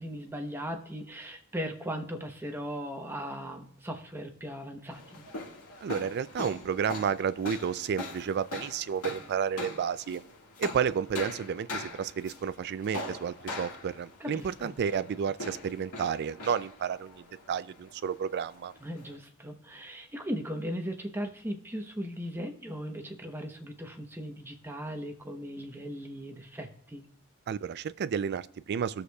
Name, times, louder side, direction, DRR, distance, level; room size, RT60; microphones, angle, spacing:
voice 1, 0.0-5.2 14.2-14.7 18.8-27.0, equal, 10° right, 4 dB, 0.8 m, -38 dB
sound 1, 4.9-19.2, left 2 dB, 90° left, 1.8 m, -42 dB
voice 2, 5.8-10.2 10.6-18.7 27.5-29.0, right 7 dB, 50° right, 15 dB, 0.3 m, -31 dB
18.5 x 6.4 x 2.3 m, 0.63 s
head